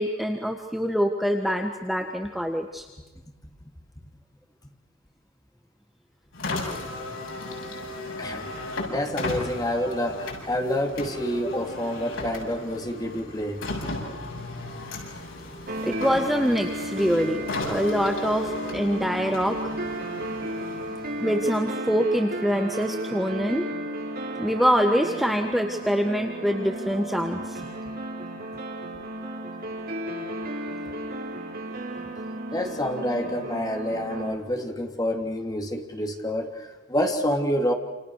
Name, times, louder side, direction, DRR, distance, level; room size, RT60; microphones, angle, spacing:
voice 1, 0.0-2.9 15.8-17.4 17.7-19.7 21.2-23.6 24.4-27.6, equal, ahead, 3 dB, 1.6 m, -25 dB
Car, 6.3-21.7, left 2 dB, 85° left, 7.6 m, -35 dB
voice 2, 8.9-13.6 32.5-37.7, equal, 20° left, 3 dB, 3.2 m, -28 dB
sound 1, 15.7-34.3, right 1 dB, 50° right, 4.5 m, -34 dB
28.5 x 28.5 x 6.6 m, 1.2 s
head